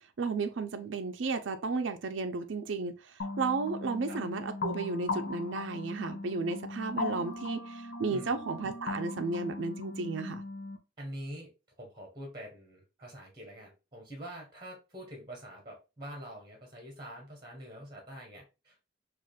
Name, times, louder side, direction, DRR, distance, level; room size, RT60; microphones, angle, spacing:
voice 1, 0.2-10.4, right 4 dB, 75° right, 0.4 m, -33 dB
sound 1, 3.2-10.8, left 3 dB, 55° left, 0.6 m, -38 dB
voice 2, 11.0-11.5 11.8-18.7, equal, 25° right, 1.2 m, -45 dB
4.8 x 2.4 x 2.3 m
head